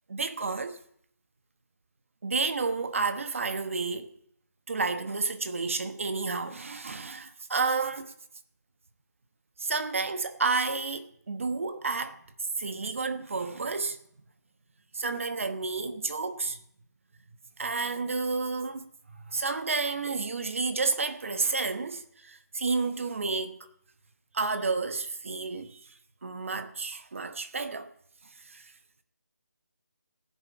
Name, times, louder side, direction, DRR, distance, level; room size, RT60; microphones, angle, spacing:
voice 1, 0.1-0.8 2.2-4.1 4.7-8.1 9.6-12.2 12.6-14.0 14.9-16.6 17.6-23.7 24.3-25.8 26.2-27.9 28.4-28.7, right 4 dB, 45° right, 1.1 m, -31 dB
16.0 x 7.2 x 8.3 m
figure-of-eight pair, 170°, 10 cm